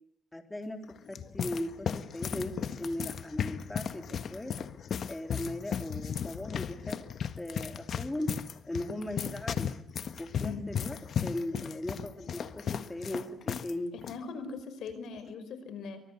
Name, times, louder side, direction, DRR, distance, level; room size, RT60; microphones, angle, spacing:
voice 1, 0.3-0.8 1.1-4.5 5.1-7.0 7.4-8.3 8.6-9.7 10.2-13.9, left 1 dB, 10° left, 6 dB, 3.8 m, -38 dB
sound 1, 0.8-13.7 14.0-14.2 14.9-15.2, left 7 dB, 60° left, 1.5 m, -36 dB
voice 2, 10.4-10.8 13.9-16.0, left 4 dB, 80° left, 12 dB, 5.0 m, -40 dB
26.0 x 24.5 x 8.1 m, 0.65 s
cardioid pair, 100°, 0 cm